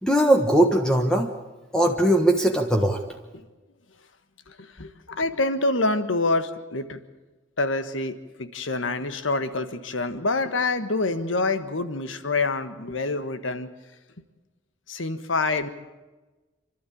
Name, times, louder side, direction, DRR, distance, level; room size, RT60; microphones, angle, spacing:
voice 1, 0.0-1.3 1.7-3.0, right 1 dB, 5° left, 2 dB, 1.3 m, -20 dB
voice 2, 4.5-7.0 7.6-13.7 14.9-15.7, left 3 dB, 80° left, 10 dB, 1.4 m, -26 dB
28.5 x 12.5 x 8.6 m, 1.2 s
head